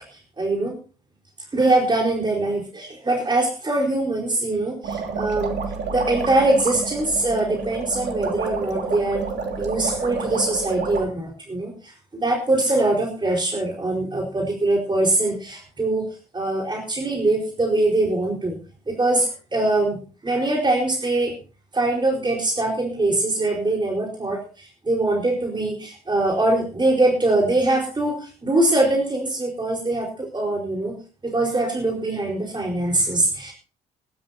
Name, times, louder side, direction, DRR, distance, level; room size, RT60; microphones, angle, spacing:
voice 1, 0.1-0.8 1.5-5.6 5.9-9.2 9.6-16.1 16.3-18.6 18.9-20.0 20.2-21.3 21.7-30.9 31.2-33.5, right 2 dB, 20° right, -1 dB, 4.6 m, -22 dB
sound 1, 4.8-11.0, right 4 dB, 55° right, 3.0 m, -29 dB
23.5 x 12.5 x 2.8 m, 0.37 s
hypercardioid pair, 50°, 21 cm